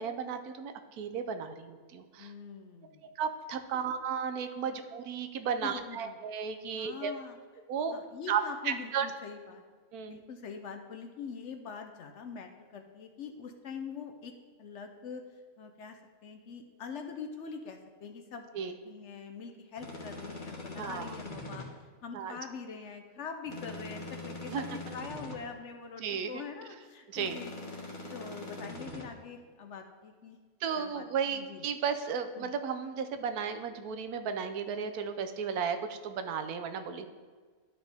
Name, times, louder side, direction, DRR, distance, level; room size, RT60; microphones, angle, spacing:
voice 1, 0.0-2.3 3.2-7.1 7.7-7.9 8.3-9.1 9.9-10.2 18.5-18.7 20.8-21.1 22.1-22.4 24.5-24.6 26.0-26.4 27.1-27.4 30.6-37.1, right 7 dB, 85° right, 8 dB, 1.2 m, -34 dB
voice 2, 2.2-3.1 3.7-3.9 5.6-6.2 6.7-7.4 7.9-9.6 10.1-15.3 15.6-21.7 22.0-27.5 28.1-30.4 30.7-31.6 32.3-32.5, left 6 dB, 60° left, 5 dB, 0.9 m, -44 dB
sound 1, 19.8-21.7 23.5-25.4 27.1-29.0, left 2 dB, 35° left, 1.3 m, -42 dB
12.0 x 5.1 x 3.4 m, 1.6 s
omnidirectional pair, 1.6 m